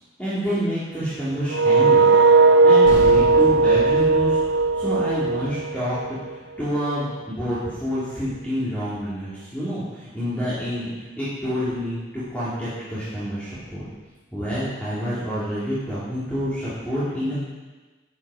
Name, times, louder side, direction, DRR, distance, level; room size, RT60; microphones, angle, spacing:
voice 1, 0.2-2.1 2.6-4.4 4.7-13.8 14.3-17.3, equal, 10° left, -12 dB, 2.8 m, -28 dB
sound 1, 1.5-6.3, right 3 dB, 85° right, 0.5 m, -17 dB
sound 2, 2.9-7.6, equal, 75° left, 2.8 m, -36 dB
11.5 x 8.8 x 4.9 m, 1.2 s
head